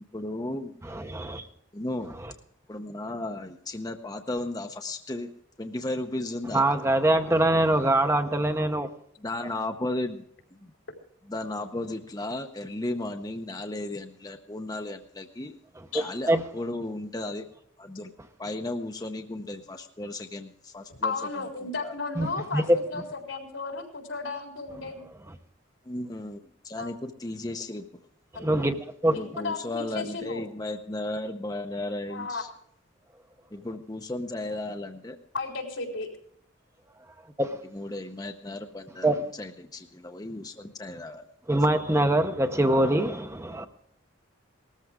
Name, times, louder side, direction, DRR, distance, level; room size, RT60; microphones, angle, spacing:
voice 1, 0.1-0.7 1.7-2.2 2.7-5.3 5.6-6.7 9.2-10.2 10.5-10.7 11.3-15.6 15.9-17.5 17.8-18.1 18.4-21.1 21.6-21.9 25.8-27.8 29.1-32.5 33.5-35.2 37.7-41.2, left 2 dB, 20° left, 0.7 m, -35 dB
voice 2, 0.8-1.5 6.5-8.9 15.9-16.4 22.2-22.3 22.5-22.8 28.3-28.7 29.0-29.1 37.4-37.6 39.0-39.2 41.5-43.7, right 1 dB, 15° right, 0.7 m, -23 dB
voice 3, 21.0-22.6 22.9-25.0 26.8-26.9 28.3-28.6 29.1-30.4 32.1-32.4 35.3-36.1, left 4 dB, 90° left, 3.9 m, -34 dB
19.0 x 14.0 x 3.6 m
head